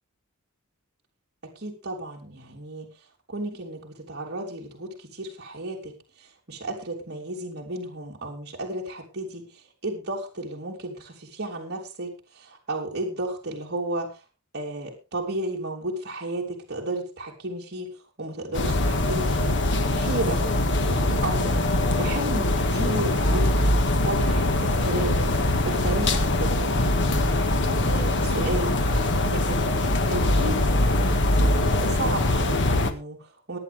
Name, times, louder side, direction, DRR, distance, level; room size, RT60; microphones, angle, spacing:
voice 1, 1.4-2.9 3.3-9.5 9.8-14.1 14.5-21.6 22.0-23.7 24.0-33.6, right 2 dB, 50° right, -2 dB, 3.3 m, -34 dB
sound 1, 18.5-32.9, left 1 dB, 60° left, 1.6 m, -22 dB
22.0 x 9.3 x 3.5 m, 0.30 s
head